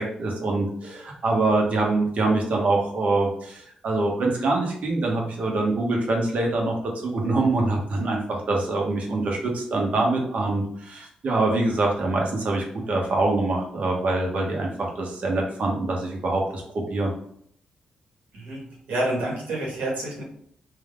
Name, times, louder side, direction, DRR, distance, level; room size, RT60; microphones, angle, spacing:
voice 1, 0.0-6.7 7.0-17.1, right 2 dB, 60° right, 0 dB, 1.2 m, -24 dB
voice 2, 18.3-20.2, right 1 dB, 80° right, -2 dB, 1.7 m, -28 dB
3.7 x 2.7 x 3.6 m, 0.64 s
cardioid pair, 65°, 3 cm